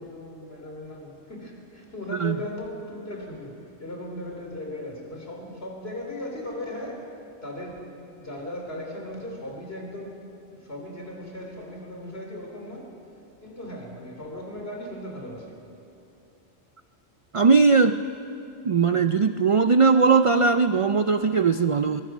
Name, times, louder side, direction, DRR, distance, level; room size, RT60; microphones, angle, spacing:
voice 1, 0.0-12.9 13.4-15.6, left 1 dB, 60° left, 0 dB, 4.0 m, -37 dB
voice 2, 17.3-18.0 18.6-22.0, right 4 dB, 50° right, 10 dB, 0.4 m, -19 dB
24.0 x 20.0 x 6.2 m, 2.7 s
omnidirectional pair, 1.2 m